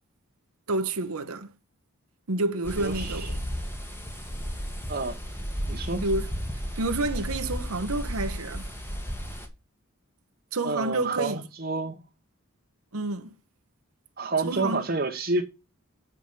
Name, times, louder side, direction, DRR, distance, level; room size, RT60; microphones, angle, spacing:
voice 1, 0.7-1.5 2.3-3.4 6.0-6.3 6.8-8.7 10.5-11.4 12.9-13.3 14.4-14.8, right 2 dB, 85° right, 1.1 m, -29 dB
sound 1, 2.6-9.5, equal, 10° left, 1.4 m, -33 dB
voice 2, 2.8-3.3 4.9-5.2 5.7-6.0 10.6-12.0 14.2-15.4, right 3 dB, 45° right, 1.0 m, -29 dB
8.6 x 4.9 x 5.5 m
head